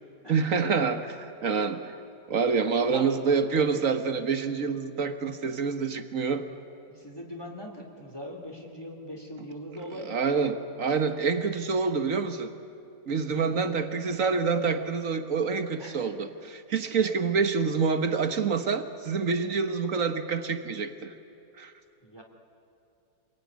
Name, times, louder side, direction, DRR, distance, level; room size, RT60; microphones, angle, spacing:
voice 1, 0.3-1.1 1.4-1.8 2.3-6.5 9.9-12.5 13.1-21.1 21.6-21.7, right 5 dB, 55° right, 8 dB, 1.6 m, -27 dB
voice 2, 2.6-3.1 6.9-10.4 10.9-11.0 13.3-13.5 15.8-16.1 17.0-17.1 22.0-22.2, equal, 15° left, 2 dB, 2.8 m, -41 dB
27.0 x 21.5 x 9.6 m, 2.6 s
omnidirectional pair, 1.8 m